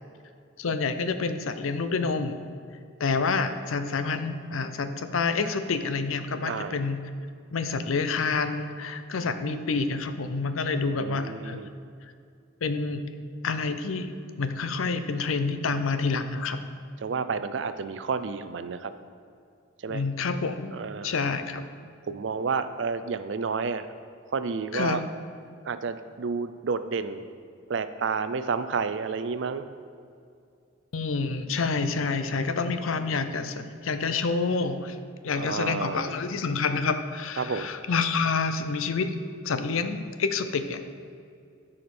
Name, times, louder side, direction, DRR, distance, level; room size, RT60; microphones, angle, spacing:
voice 1, 0.6-2.4 3.0-7.0 7.5-11.6 12.6-13.0 13.4-14.1 14.4-16.6 19.9-20.7 21.0-21.6 24.7-25.0 30.9-35.0 35.2-39.2 39.4-40.8, left 4 dB, 85° left, 9 dB, 0.6 m, -28 dB
voice 2, 6.5-6.8 10.7-11.8 17.0-18.9 19.8-20.0 20.7-21.2 22.1-23.9 24.3-25.0 25.7-27.3 27.7-29.6 35.3-36.2 37.4-37.7, right 5 dB, 65° right, 11 dB, 0.4 m, -30 dB
13.5 x 5.0 x 4.3 m, 2.4 s
head